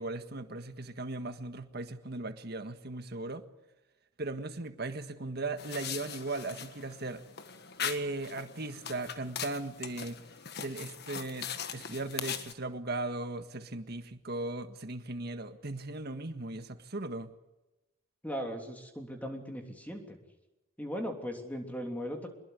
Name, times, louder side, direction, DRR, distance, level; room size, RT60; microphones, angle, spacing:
voice 1, 0.0-3.4 4.2-7.2 7.8-10.2 10.6-17.3, right 2 dB, 55° right, 8 dB, 1.7 m, -38 dB
sound 1, 5.6-12.5, left 8 dB, 55° left, 1.6 m, -41 dB
voice 2, 18.2-20.2 20.8-22.3, equal, 10° left, 3 dB, 3.2 m, -38 dB
24.0 x 21.5 x 8.3 m, 1.0 s
head